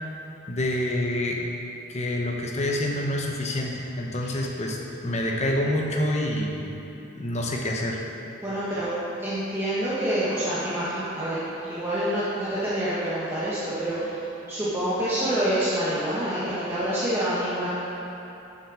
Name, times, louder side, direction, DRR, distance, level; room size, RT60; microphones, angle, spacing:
voice 1, 0.5-1.4 1.9-4.8 5.0-6.7 7.1-8.0, left 1 dB, 35° left, -1 dB, 0.9 m, -27 dB
voice 2, 8.4-8.9 9.2-11.4 11.7-14.2 14.5-17.7, right 1 dB, 15° right, -12 dB, 1.3 m, -27 dB
7.1 x 6.6 x 6.2 m, 2.9 s
head